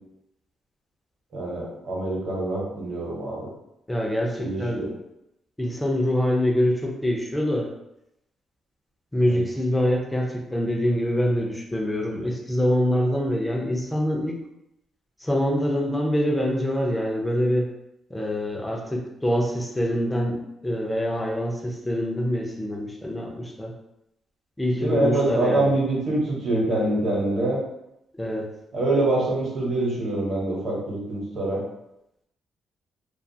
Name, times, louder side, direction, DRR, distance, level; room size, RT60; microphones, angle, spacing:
voice 1, 1.3-3.5 4.4-4.9 9.2-9.4 24.7-27.6 28.7-31.6, right 2 dB, 60° right, -4 dB, 1.0 m, -25 dB
voice 2, 3.9-4.8 5.6-7.7 9.1-14.4 15.2-17.7 18.1-23.7 24.6-25.7 28.2-28.5, equal, 10° left, -1 dB, 0.5 m, -25 dB
2.4 x 2.4 x 2.6 m, 0.85 s
cardioid pair, 120°, 0 cm